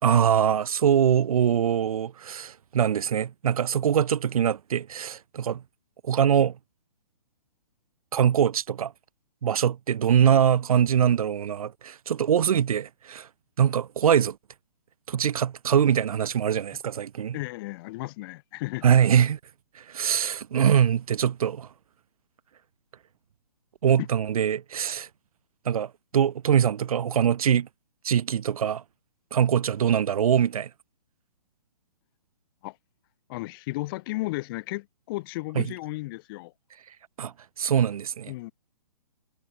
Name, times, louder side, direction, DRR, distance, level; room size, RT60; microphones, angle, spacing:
voice 1, 0.0-5.6 6.0-6.6 8.1-8.9 9.4-13.3 13.6-14.4 15.1-17.3 18.8-19.4 19.8-21.7 23.8-25.1 25.7-27.7 28.0-28.8 29.3-30.7 35.6-35.7 37.2-38.3, right 8 dB, 60° right, 1.8 m, -23 dB
voice 2, 17.3-18.9 24.0-24.1 32.6-32.8 33.3-36.5 38.3-38.5, left 21 dB, 35° left, 7.7 m, -34 dB
hypercardioid pair, 150°, 21 cm